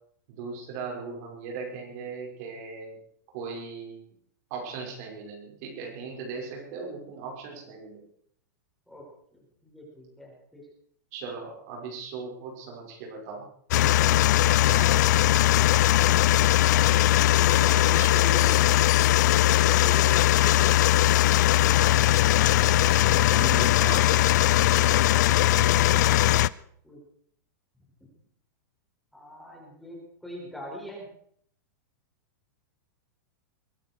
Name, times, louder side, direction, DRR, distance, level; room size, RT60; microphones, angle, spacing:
voice 1, 0.3-3.0 3.3-4.0 4.5-8.0 11.1-13.4 14.7-15.0 17.4-18.9 23.1-24.2, right 4 dB, 50° right, 0 dB, 5.8 m, -38 dB
voice 2, 9.3-10.7 26.8-27.0 29.1-31.1, equal, ahead, -3 dB, 6.4 m, -44 dB
sound 1, 13.7-26.5, left 15 dB, 60° left, 0.6 m, -20 dB
22.5 x 13.5 x 4.8 m, 0.64 s
supercardioid pair, 145°, 11 cm